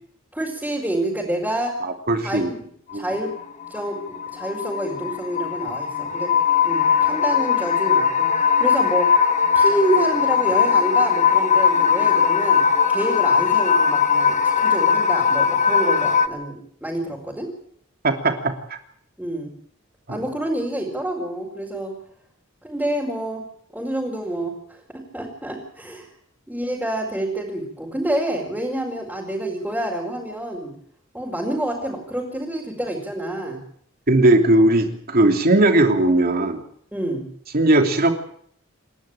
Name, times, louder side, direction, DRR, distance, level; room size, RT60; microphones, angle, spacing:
voice 1, 0.3-1.8 2.2-2.6 2.9-3.3 3.7-6.3 6.6-9.2 9.5-17.5 19.2-19.5 20.1-21.9 22.6-23.4 23.7-26.1 26.5-30.7 31.1-33.6 36.9-37.3, right 1 dB, 5° right, -4 dB, 4.7 m, -27 dB
voice 2, 1.8-2.5 2.9-3.1 18.0-18.8 20.1-20.2 34.1-36.6 37.5-38.1, right 1 dB, 50° right, 5 dB, 2.9 m, -18 dB
sound 1, 2.9-16.3, left 6 dB, 35° left, 1.4 m, -19 dB
27.5 x 11.5 x 8.9 m, 0.65 s
head